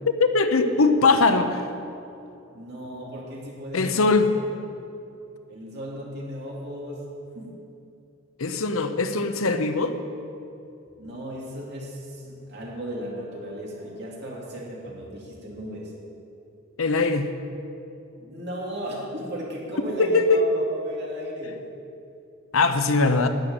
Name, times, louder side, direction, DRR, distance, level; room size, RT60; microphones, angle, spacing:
voice 1, 0.2-1.7 3.7-4.3 8.4-9.9 16.8-17.3 20.0-20.4 22.5-23.3, left 3 dB, 90° left, 8 dB, 0.8 m, -21 dB
voice 2, 2.5-4.5 5.5-7.6 11.0-15.9 18.2-21.6, equal, 55° right, -3 dB, 2.7 m, -35 dB
11.5 x 6.5 x 9.4 m, 2.7 s
head